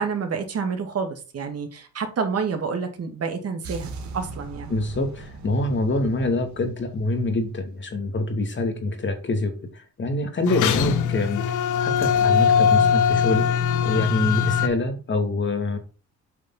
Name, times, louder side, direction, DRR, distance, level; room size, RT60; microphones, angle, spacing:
voice 1, 0.0-4.7, right 5 dB, 55° right, 5 dB, 2.6 m, -28 dB
sound 1, 3.6-7.7, right 3 dB, 70° right, 2.3 m, -39 dB
voice 2, 4.7-15.8, left 2 dB, 40° left, 5 dB, 2.8 m, -26 dB
sound 2, 10.5-14.7, left 7 dB, 80° left, 1.2 m, -21 dB
8.4 x 5.3 x 4.2 m, 0.34 s
cardioid pair, 90°, 30 cm